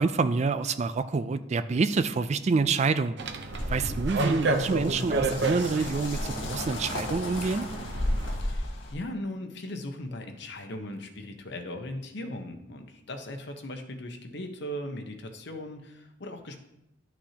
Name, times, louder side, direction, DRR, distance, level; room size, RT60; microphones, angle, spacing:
voice 1, 0.0-3.2 3.7-7.7, right 4 dB, 35° right, 12 dB, 0.4 m, -27 dB
sound 1, 3.2-8.4, right 2 dB, 60° right, 0.8 m, -31 dB
sound 2, 3.5-8.9, left 1 dB, 85° left, 1.6 m, -34 dB
voice 2, 8.9-16.6, left 1 dB, 65° left, 5 dB, 1.0 m, -38 dB
11.5 x 6.1 x 2.9 m, 0.85 s
head